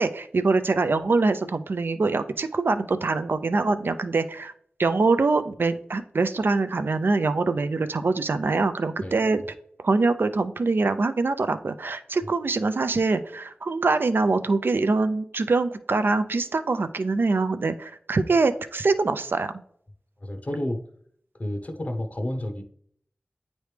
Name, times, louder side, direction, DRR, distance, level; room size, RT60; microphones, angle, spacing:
voice 1, 0.0-4.5 4.8-9.4 9.8-19.5, right 3 dB, 65° right, 11 dB, 0.4 m, -24 dB
voice 2, 20.2-20.8 21.4-22.6, left 1 dB, 40° left, 5 dB, 0.8 m, -30 dB
9.1 x 3.1 x 3.3 m, 0.64 s
wide cardioid pair, 55°, 4 cm